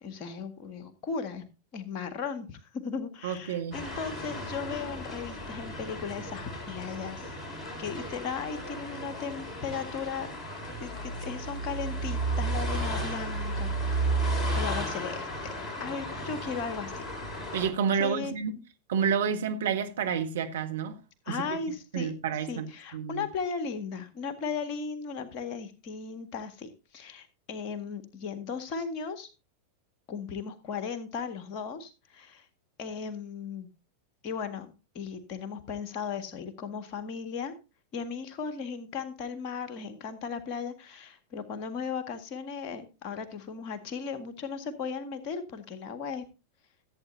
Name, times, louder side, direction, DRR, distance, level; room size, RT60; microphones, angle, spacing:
voice 1, 0.0-1.5 1.7-7.3 7.8-10.3 10.8-15.3 15.8-17.0 18.0-18.4 21.3-22.1 22.4-29.3 30.1-32.5 32.8-33.7 34.2-37.5 37.9-46.2, left 5 dB, 40° left, 1.7 m, -36 dB
voice 2, 3.2-3.8 17.5-18.5 18.9-21.0 21.3-21.6 21.9-22.7 22.9-23.2, right 7 dB, 60° right, 1.4 m, -29 dB
sound 1, 3.7-17.7, right 1 dB, 15° left, 4.4 m, -34 dB
15.0 x 8.7 x 2.7 m
figure-of-eight pair, 90°, 0 cm